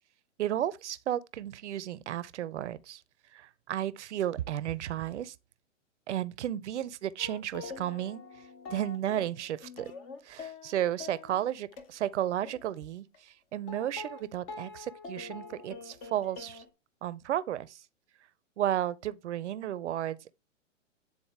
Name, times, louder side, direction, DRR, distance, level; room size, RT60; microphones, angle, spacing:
voice 1, 0.4-3.0 3.3-5.3 6.1-8.2 8.7-9.9 10.2-16.6 17.0-17.8 18.6-20.3, right 11 dB, 65° right, 0.6 m, -33 dB
sound 1, 7.2-11.9 12.3-12.7 13.1-13.2 13.7-16.7, left 4 dB, 15° left, 0.3 m, -45 dB
8.9 x 3.8 x 3.5 m
hypercardioid pair, 115°, 38 cm